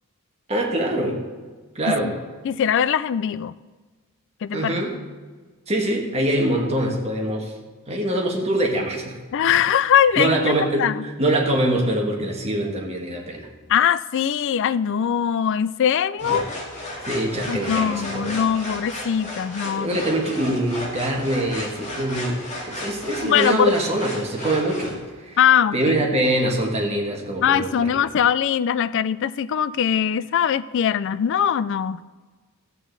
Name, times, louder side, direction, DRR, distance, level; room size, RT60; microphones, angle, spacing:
voice 1, 0.5-1.2 1.7-2.1 4.5-4.9 5.7-7.5 7.9-9.2 10.2-13.5 16.3-16.4 17.1-18.4 19.6-25.4 25.7-28.0, right 1 dB, 30° right, 0 dB, 1.5 m, -24 dB
voice 2, 2.4-3.5 4.4-4.7 9.3-10.4 10.8-11.0 13.7-16.5 17.5-19.9 23.2-23.8 25.4-26.0 27.4-32.1, left 8 dB, 55° left, 17 dB, 0.3 m, -21 dB
sound 1, 16.2-25.0, left 1 dB, 30° left, 2.0 m, -33 dB
14.0 x 8.3 x 4.0 m, 1.4 s
head